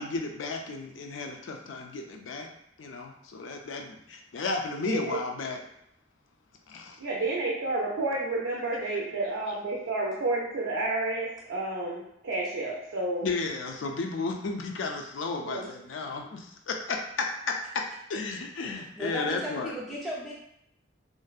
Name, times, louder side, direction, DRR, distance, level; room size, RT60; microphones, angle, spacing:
voice 1, 0.0-2.5 2.8-5.6 6.7-7.0 13.2-19.7, left 3 dB, 85° left, 3 dB, 0.4 m, -33 dB
voice 2, 4.8-5.2 7.0-13.3 15.4-15.7, right 2 dB, 85° right, -4 dB, 0.5 m, -30 dB
voice 3, 19.0-20.3, left 1 dB, ahead, -8 dB, 0.4 m, -35 dB
2.5 x 2.1 x 2.3 m, 0.77 s
head